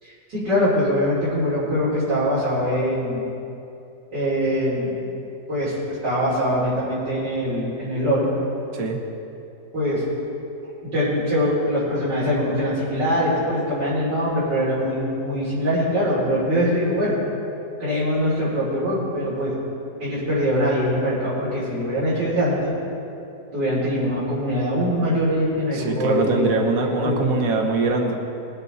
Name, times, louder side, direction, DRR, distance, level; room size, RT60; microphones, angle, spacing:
voice 1, 0.0-3.2 4.1-5.0 5.5-5.8 6.0-8.3 9.7-10.0 10.9-17.1 17.8-19.5 20.0-22.7 23.5-27.2, equal, 80° right, -11 dB, 4.3 m, -23 dB
voice 2, 25.7-28.1, right 3 dB, 55° right, 2 dB, 1.6 m, -22 dB
20.5 x 9.0 x 4.1 m, 2.8 s
omnidirectional pair, 1.9 m